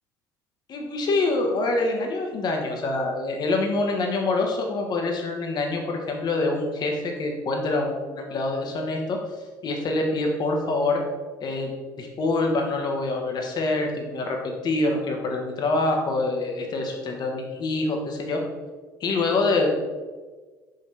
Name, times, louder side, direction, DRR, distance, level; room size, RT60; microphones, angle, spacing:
voice 1, 0.7-11.0 11.4-18.4 19.0-19.7, left 2 dB, 45° left, 2 dB, 1.3 m, -26 dB
5.7 x 5.3 x 3.3 m, 1.4 s
hypercardioid pair, 60°, 10 cm